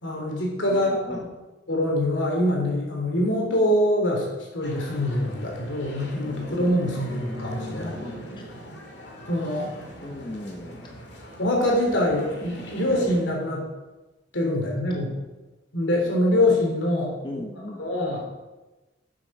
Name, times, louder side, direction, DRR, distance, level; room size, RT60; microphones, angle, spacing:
voice 1, 0.0-1.0 1.7-7.9 9.3-9.7 11.4-13.7 14.3-15.1 15.7-17.1 17.8-18.2, left 1 dB, 85° left, -1 dB, 3.3 m, -24 dB
voice 2, 0.7-1.3 7.7-8.4 10.0-11.0 17.2-17.8, left 1 dB, 25° left, 0 dB, 1.1 m, -37 dB
sound 1, 4.6-13.2, equal, 65° left, 2.1 m, -40 dB
12.0 x 7.6 x 4.9 m, 1.1 s
head